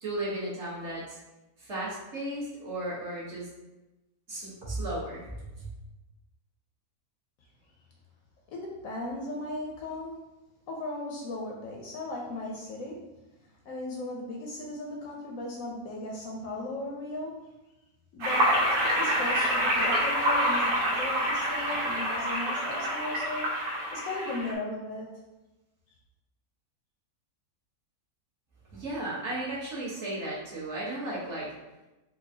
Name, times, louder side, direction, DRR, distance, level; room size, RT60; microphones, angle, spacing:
voice 1, 0.0-1.2 1.6-3.5 4.3-5.7 28.7-31.5, right 1 dB, 50° right, -9 dB, 1.4 m, -35 dB
voice 2, 8.5-10.3 10.7-13.1 13.6-17.5 18.1-18.7 19.0-23.5 23.9-25.1, left 2 dB, 70° left, -1 dB, 0.9 m, -37 dB
sound 1, 18.2-24.5, equal, 80° right, 1.4 m, -27 dB
4.6 x 2.3 x 2.7 m, 1.0 s
omnidirectional pair, 1.6 m